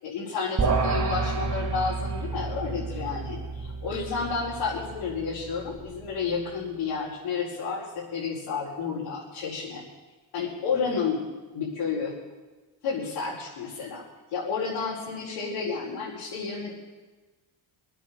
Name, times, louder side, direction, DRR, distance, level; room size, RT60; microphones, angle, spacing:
voice 1, 0.0-9.8 10.3-11.2 11.5-12.1 12.8-14.0 14.3-16.7, left 5 dB, 75° left, -8 dB, 5.0 m, -31 dB
sound 1, 0.6-6.1, right 4 dB, 40° right, 2.3 m, -30 dB
23.0 x 9.1 x 6.7 m, 1.2 s
supercardioid pair, 70°, 49 cm